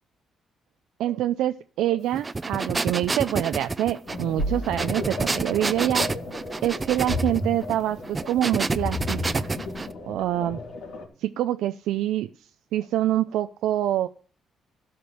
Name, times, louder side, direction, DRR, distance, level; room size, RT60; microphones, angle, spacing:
voice 1, 1.0-6.1 6.6-9.2 10.1-10.6 11.2-12.3 12.7-14.1, right 13 dB, 85° right, 8 dB, 0.4 m, -25 dB
Dog - Snif - Sniffing - Animal - Breathing - Search, 2.1-9.9, right 3 dB, 25° right, 0.6 m, -29 dB
sound 1, 4.1-11.1, left 2 dB, 70° left, 3.1 m, -33 dB
13.0 x 5.2 x 7.6 m, 0.42 s
cardioid pair, 90°, 0 cm